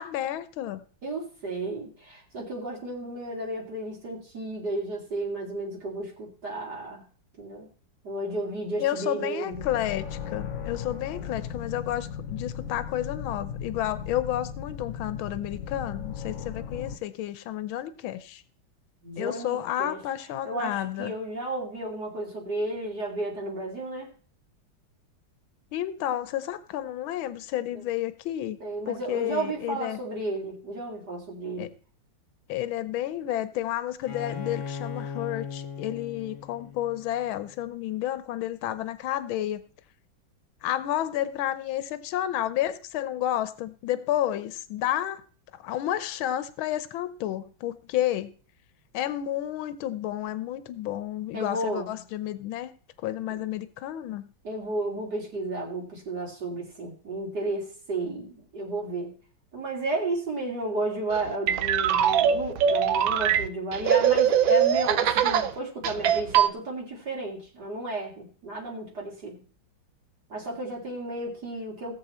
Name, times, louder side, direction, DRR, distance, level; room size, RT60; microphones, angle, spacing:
voice 1, 0.0-0.8 8.8-18.4 19.2-21.1 25.7-28.6 28.9-30.0 31.6-31.7 32.5-39.6 40.6-45.2 45.5-48.3 48.9-52.7 53.0-54.3, left 12 dB, 80° left, 13 dB, 1.6 m, -31 dB
voice 2, 1.0-7.0 7.4-7.7 8.0-9.7 11.1-11.3 19.0-20.0 20.4-24.1 27.7-27.8 28.6-31.7 51.3-51.9 54.4-59.1 59.5-69.4 70.3-71.9, right 2 dB, 55° right, -2 dB, 3.1 m, -33 dB
sound 1, 9.5-17.0, left 7 dB, 60° left, 0.8 m, -36 dB
Bowed string instrument, 34.1-37.7, left 6 dB, 40° left, 1.5 m, -38 dB
sound 2, 61.1-65.5 65.8-66.5, right 9 dB, 75° right, 1.5 m, -22 dB
17.5 x 7.6 x 4.3 m, 0.42 s
omnidirectional pair, 2.2 m